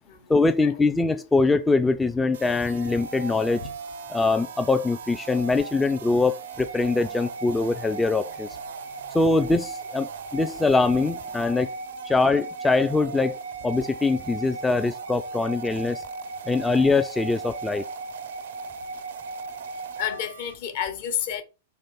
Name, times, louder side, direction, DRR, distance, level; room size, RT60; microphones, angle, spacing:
voice 1, 0.3-3.6 4.1-8.5 9.1-11.7 12.0-13.3 13.6-16.0 16.5-17.8, left 3 dB, 10° left, 0.3 m, -23 dB
sound 1, 2.3-20.5, right 4 dB, 65° right, 0.5 m, -37 dB
voice 2, 20.0-21.4, left 9 dB, 55° left, 0.9 m, -30 dB
4.2 x 3.0 x 4.0 m
figure-of-eight pair, 100°, 0 cm